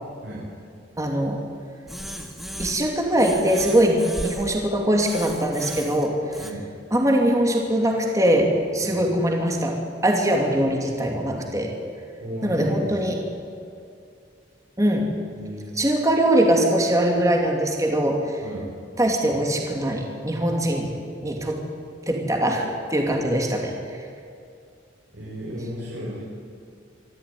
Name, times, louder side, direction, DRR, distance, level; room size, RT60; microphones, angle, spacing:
voice 1, 1.0-1.4 2.6-6.4 6.9-9.8 10.0-11.8 12.4-13.2 14.8-15.1 15.8-18.4 19.0-20.9 21.2-21.7 22.1-24.0, right 1 dB, 20° right, 1 dB, 2.7 m, -22 dB
sound 1, 1.9-2.9 3.2-4.5 5.0-6.5, equal, ahead, 1.9 m, -36 dB
voice 2, 12.2-13.0 15.4-15.7 18.4-18.7 25.1-26.2, equal, 70° right, -6 dB, 5.7 m, -33 dB
25.0 x 13.5 x 9.8 m, 2.4 s
head